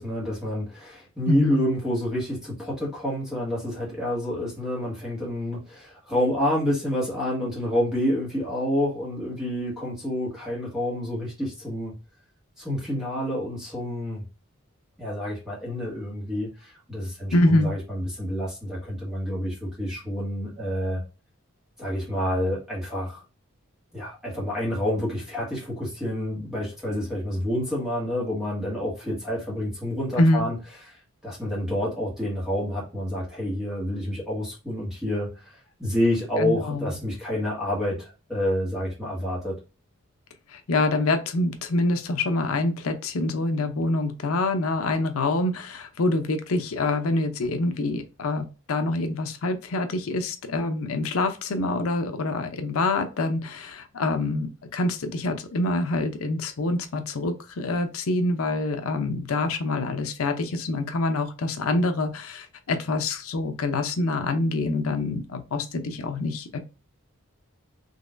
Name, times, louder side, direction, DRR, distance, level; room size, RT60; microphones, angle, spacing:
voice 1, 0.0-11.9 12.6-14.2 15.0-21.0 21.8-23.2 23.9-30.6 31.2-39.6, left 1 dB, 5° right, -6 dB, 1.7 m, -28 dB
voice 2, 1.3-1.7 17.3-17.7 30.2-30.5 36.4-36.9 40.5-66.6, left 2 dB, 80° left, 7 dB, 0.6 m, -26 dB
4.0 x 3.1 x 2.5 m, 0.31 s
head